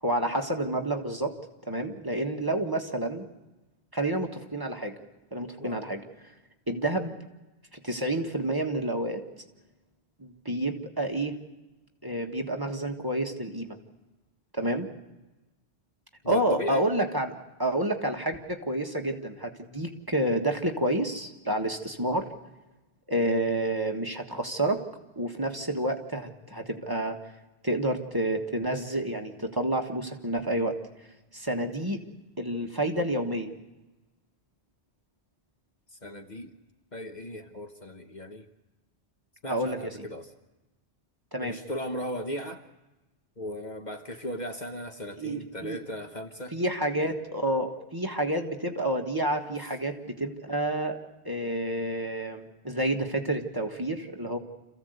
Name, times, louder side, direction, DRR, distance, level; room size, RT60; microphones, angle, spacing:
voice 1, 0.0-1.3 1.7-3.2 3.9-5.0 5.3-6.3 6.7-7.2 7.7-9.2 10.2-11.4 12.0-13.8 14.5-14.9 16.2-17.3 17.6-22.3 23.1-24.8 25.1-27.2 27.6-31.1 31.3-32.0 32.4-33.5 39.5-40.0 41.3-41.6 45.2-45.8 46.5-51.0 51.2-54.4, right 1 dB, 20° right, 2 dB, 1.6 m, -29 dB
voice 2, 16.2-16.8 36.0-36.5 36.9-38.5 39.4-40.3 41.4-42.6 43.4-46.6 49.6-49.7, equal, 40° left, 5 dB, 1.3 m, -37 dB
27.5 x 15.5 x 8.0 m, 1.1 s
omnidirectional pair, 1.1 m